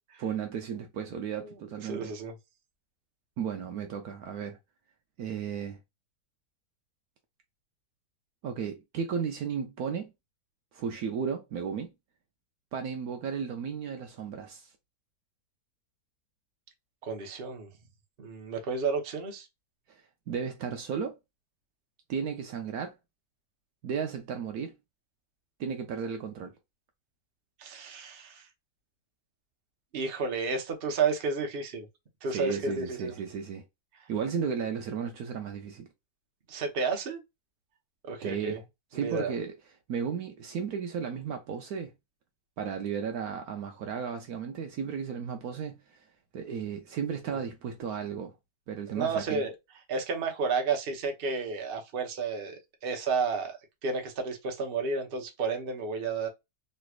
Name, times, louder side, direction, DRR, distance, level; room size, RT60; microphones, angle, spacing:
voice 1, 0.2-2.1 3.4-4.6 5.2-5.8 8.4-10.1 10.7-11.9 12.7-14.7 19.9-21.2 22.1-23.0 23.8-24.7 25.6-26.5 32.3-33.6 34.1-35.9 38.2-38.6 38.9-39.5 39.9-41.9 42.6-46.0 46.3-48.3 48.7-49.4, right 7 dB, 70° right, 1.0 m, -34 dB
voice 2, 1.8-2.3 17.0-17.7 18.2-19.5 27.6-28.4 29.9-31.9 32.2-33.1 36.5-37.2 38.0-38.6 38.9-39.3 47.3-47.4 48.9-49.5 49.9-52.6 52.8-53.6 53.8-56.3, right 4 dB, 45° right, 0.9 m, -31 dB
3.2 x 3.1 x 2.3 m
omnidirectional pair, 1.8 m